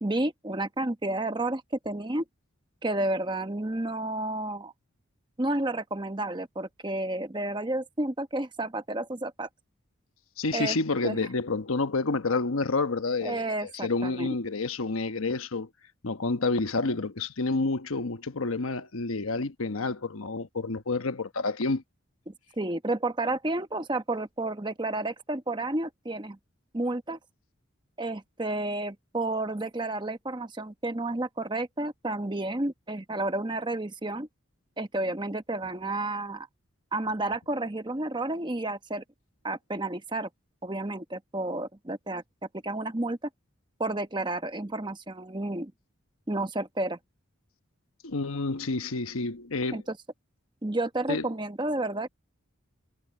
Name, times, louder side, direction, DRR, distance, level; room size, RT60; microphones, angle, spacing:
voice 1, 0.0-2.2 2.8-4.7 5.4-9.5 10.5-10.8 11.0-11.2 13.2-14.3 22.3-26.4 26.7-27.2 28.0-34.3 34.8-36.5 36.9-39.0 39.4-40.3 40.6-42.2 42.6-43.2 43.8-45.7 46.3-47.0 49.7-50.0 50.6-52.1, right 2 dB, 20° right, 1.0 m, -31 dB
voice 2, 10.4-13.5 13.8-15.7 16.0-21.8 48.0-49.8 51.1-51.3, left 3 dB, 90° left, 1.1 m, -29 dB
head